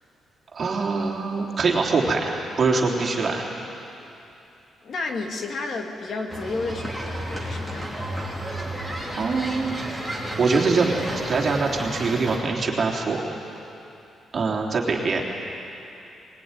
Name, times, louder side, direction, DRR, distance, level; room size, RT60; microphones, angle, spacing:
voice 1, 0.5-3.5 9.2-9.7 10.4-11.0 11.2-13.2 14.3-15.2, right 4 dB, 40° right, -1 dB, 3.4 m, -23 dB
voice 2, 4.8-8.1, left 3 dB, 50° left, 3 dB, 2.2 m, -31 dB
sound 1, 6.3-12.4, right 1 dB, 5° left, 3.6 m, -32 dB
22.5 x 21.0 x 9.8 m, 2.8 s
cardioid pair, 145°, 0 cm